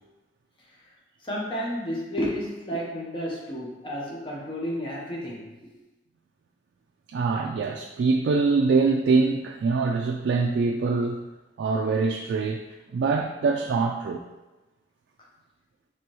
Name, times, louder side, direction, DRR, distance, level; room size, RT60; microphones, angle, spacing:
voice 1, 1.2-5.7, equal, 30° left, -4 dB, 0.8 m, -31 dB
voice 2, 7.1-11.2 11.6-12.6 12.9-14.2, right 4 dB, 85° right, 2 dB, 0.3 m, -24 dB
4.7 x 3.0 x 3.0 m, 1.1 s
head